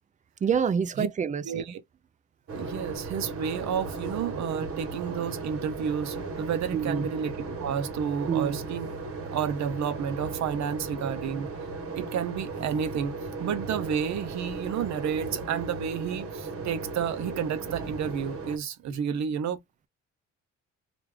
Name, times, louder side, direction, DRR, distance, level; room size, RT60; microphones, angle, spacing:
voice 1, 0.4-1.6 6.7-7.1 8.3-8.6, right 7 dB, 25° right, 0.3 m, -27 dB
voice 2, 1.4-1.8 2.6-8.9 9.2-11.5 12.0-13.1 13.4-19.6, right 7 dB, 65° right, 0.7 m, -31 dB
sound 1, 2.5-18.6, right 3 dB, 50° right, 1.1 m, -36 dB
3.2 x 2.4 x 3.3 m
cardioid pair, 90°, 30 cm